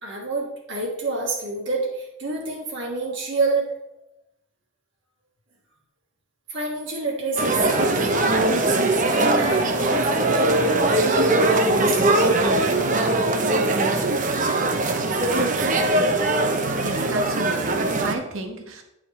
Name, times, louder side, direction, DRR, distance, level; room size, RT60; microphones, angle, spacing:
voice 1, 0.0-3.7 6.5-8.2 9.1-12.4 15.0-15.9 16.5-16.7, right 2 dB, 65° right, -2 dB, 1.7 m, -27 dB
sound 1, 7.4-18.1, right 2 dB, 40° right, 0.7 m, -21 dB
voice 2, 16.8-18.8, right 2 dB, 85° right, 4 dB, 1.3 m, -33 dB
9.5 x 4.9 x 4.2 m, 0.88 s
head